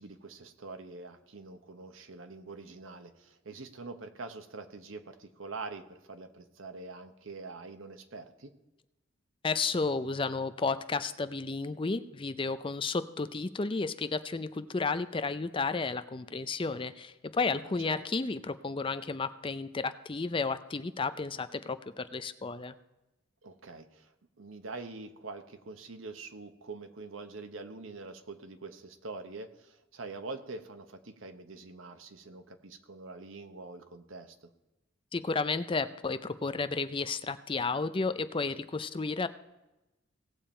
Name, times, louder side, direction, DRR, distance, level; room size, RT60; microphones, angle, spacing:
voice 1, 0.0-8.5 17.6-18.0 23.4-34.5, right 3 dB, 85° right, 9 dB, 1.0 m, -45 dB
voice 2, 9.4-22.8 35.1-39.3, left 4 dB, 25° left, 12 dB, 0.5 m, -32 dB
18.0 x 7.2 x 4.4 m, 0.99 s
head